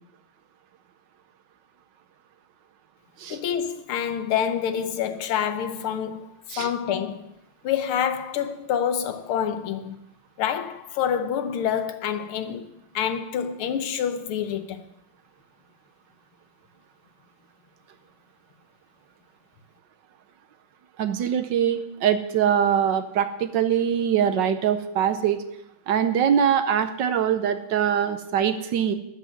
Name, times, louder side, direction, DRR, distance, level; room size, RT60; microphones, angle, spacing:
voice 1, 3.3-7.4 7.6-10.0 10.4-14.8, left 8 dB, 90° left, 1.8 m, -27 dB
voice 2, 21.0-25.4 25.9-28.9, right 8 dB, 65° right, 1.3 m, -23 dB
12.5 x 6.0 x 9.3 m
omnidirectional pair, 2.3 m